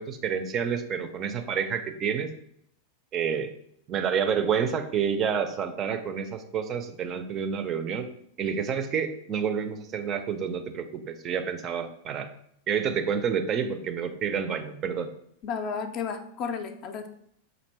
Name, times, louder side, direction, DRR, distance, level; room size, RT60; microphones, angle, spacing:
voice 1, 0.0-2.3 3.1-3.5 3.9-8.1 8.4-12.3 12.7-15.1, right 7 dB, 30° right, 8 dB, 0.4 m, -29 dB
voice 2, 15.4-17.1, left 6 dB, 40° left, 7 dB, 0.4 m, -32 dB
5.1 x 2.5 x 3.3 m, 0.70 s
figure-of-eight pair, 90°, 0 cm